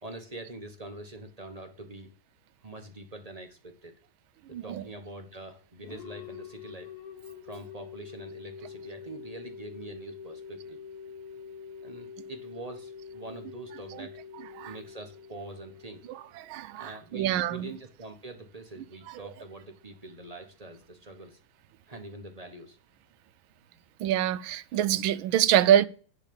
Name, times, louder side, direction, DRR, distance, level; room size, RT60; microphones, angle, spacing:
voice 1, 0.0-2.1 2.6-3.9 4.5-6.9 7.4-10.8 11.8-14.2 14.6-16.0 16.7-21.4 21.9-22.8, right 2 dB, 30° right, 0.7 m, -44 dB
voice 2, 4.5-4.8 14.6-14.7 16.5-17.7 24.0-25.9, right 11 dB, 75° right, 1.4 m, -25 dB
sound 1, 5.8-16.5, left 6 dB, 55° left, 1.5 m, -45 dB
10.5 x 3.8 x 6.8 m
omnidirectional pair, 2.3 m